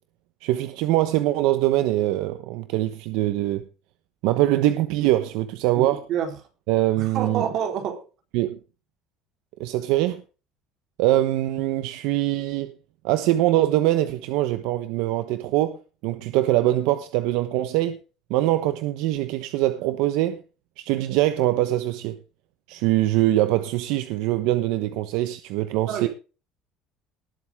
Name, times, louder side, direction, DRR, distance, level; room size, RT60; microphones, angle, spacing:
voice 1, 0.4-3.6 4.2-6.0 6.7-7.4 8.3-8.6 9.6-10.2 11.0-12.7 13.0-18.0 18.3-20.4 20.8-22.1 22.7-26.1, right 15 dB, 75° right, 1.1 m, -23 dB
voice 2, 5.7-6.4 7.0-8.0 25.9-26.1, right 8 dB, 50° right, 3.9 m, -28 dB
19.5 x 8.0 x 3.7 m
cardioid pair, 170°, 0 cm